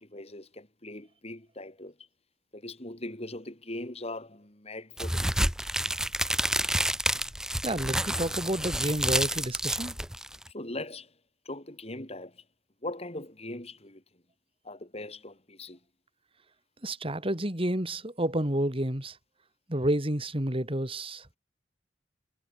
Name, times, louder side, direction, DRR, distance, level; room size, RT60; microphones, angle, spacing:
voice 1, 0.0-1.9 2.5-5.5 10.5-11.1 11.4-12.4 12.8-14.0 14.6-15.8, left 2 dB, 35° left, 4.7 m, -40 dB
sound 1, 5.0-10.5, right 1 dB, 5° right, 2.5 m, -29 dB
voice 2, 7.6-10.0 16.8-19.2 19.7-21.4, right 1 dB, 30° right, 4.2 m, -30 dB
head